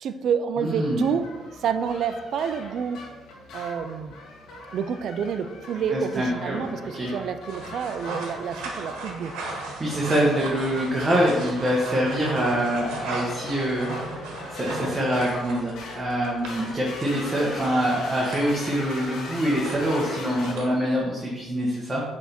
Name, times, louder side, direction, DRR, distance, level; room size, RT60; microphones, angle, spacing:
voice 1, 0.0-1.3 1.6-3.0 3.5-4.1 4.7-9.3, right 7 dB, 65° right, 10 dB, 0.4 m, -28 dB
voice 2, 0.6-1.0 5.9-7.1 9.8-14.2 14.5-22.0, equal, 30° right, -4 dB, 1.3 m, -25 dB
sound 1, 0.7-20.5, left 2 dB, 80° left, 1.5 m, -40 dB
sound 2, 7.5-21.0, right 3 dB, 85° right, 1.2 m, -37 dB
6.5 x 3.5 x 4.4 m, 1.2 s
cardioid pair, 80°, 0 cm